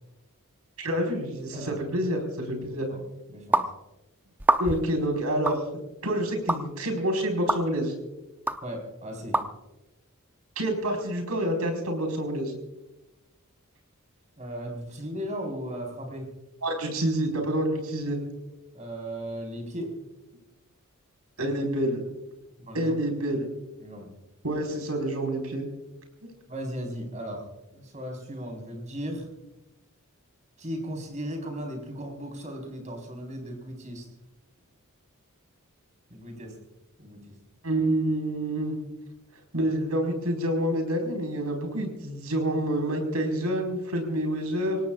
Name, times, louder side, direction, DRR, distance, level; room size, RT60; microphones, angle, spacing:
voice 1, 0.8-2.9 4.6-5.6 6.0-7.9 10.6-12.5 16.6-18.2 21.4-22.0 22.7-23.5 24.4-25.6 37.6-38.8 39.5-44.8, right 1 dB, 90° right, 3 dB, 4.8 m, -27 dB
voice 2, 2.6-3.0 3.3-3.7 8.6-9.4 14.4-16.3 18.7-19.9 22.6-22.9 23.8-24.1 26.5-27.4 27.7-29.3 30.6-34.1 36.1-36.5 37.0-37.4, equal, 35° right, 2 dB, 4.4 m, -36 dB
sound 1, 3.5-3.7 4.4-4.9 5.5-5.6 6.5-6.6 7.5-7.6 8.5-8.6 9.3-9.5, right 1 dB, 10° right, 0.7 m, -24 dB
27.0 x 18.0 x 2.4 m, 0.99 s
head